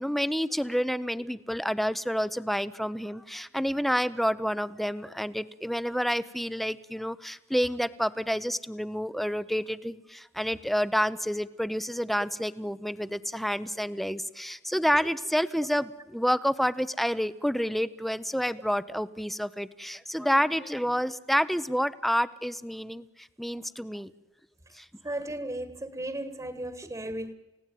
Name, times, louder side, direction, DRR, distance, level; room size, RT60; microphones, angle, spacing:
voice 1, 0.0-24.1 24.7-24.9, equal, ahead, 15 dB, 0.7 m, -29 dB
voice 2, 25.0-27.3, right 1 dB, 20° right, 11 dB, 1.5 m, -35 dB
29.5 x 17.0 x 9.2 m, 1.1 s
head